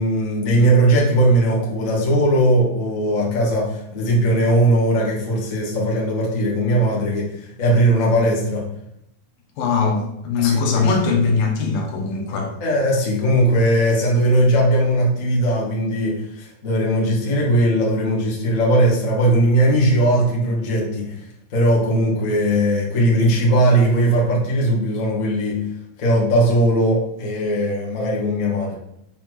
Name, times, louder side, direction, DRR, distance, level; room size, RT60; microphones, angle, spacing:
voice 1, 0.0-7.3 7.6-8.6 10.4-10.9 12.6-21.2 21.5-25.6 26.0-28.8, right 1 dB, 30° left, -3 dB, 1.6 m, -19 dB
voice 2, 9.6-12.6, left 4 dB, 75° left, 1 dB, 3.0 m, -21 dB
6.8 x 4.3 x 6.3 m, 0.80 s
omnidirectional pair, 4.3 m